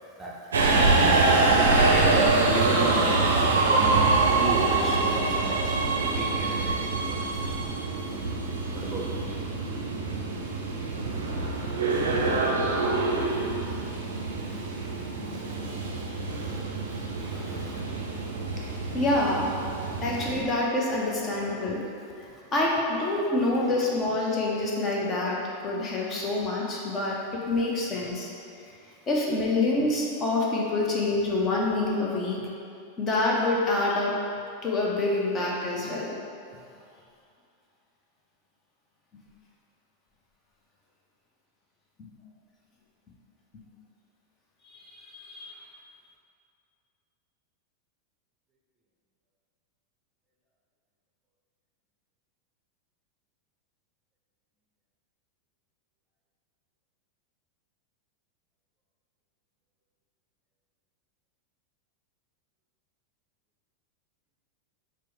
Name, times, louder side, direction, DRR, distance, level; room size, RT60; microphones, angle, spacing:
voice 1, 0.0-3.3 3.6-7.6 8.0-9.3 10.9-11.0 11.5-11.6 12.3-12.4 13.1-13.9 14.3-17.9 20.1-20.2 21.3-21.4 22.3-22.4 28.6-29.0, right 1 dB, 15° right, -4 dB, 0.6 m, -36 dB
Subway metro underground, 0.5-20.4, right 3 dB, 70° right, 0.5 m, -25 dB
voice 2, 18.9-19.5 20.0-21.8 22.5-27.2 27.5-28.3 29.1-32.4 33.0-34.1 34.6-36.1 44.9-45.5, left 2 dB, 25° left, -3 dB, 0.6 m, -26 dB
4.5 x 2.0 x 4.5 m, 2.4 s
figure-of-eight pair, 90°, 0 cm